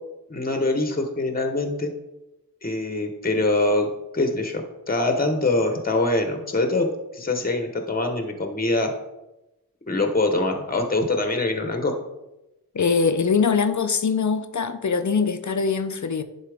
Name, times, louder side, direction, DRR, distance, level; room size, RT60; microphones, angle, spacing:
voice 1, 0.3-1.9 2.6-3.9 4.1-6.9 7.1-8.9 9.9-11.9, left 2 dB, 25° left, 1.0 m, -24 dB
voice 2, 12.7-16.2, left 5 dB, 55° left, 0.6 m, -22 dB
10.5 x 4.2 x 3.5 m
wide cardioid pair, 60°, 36 cm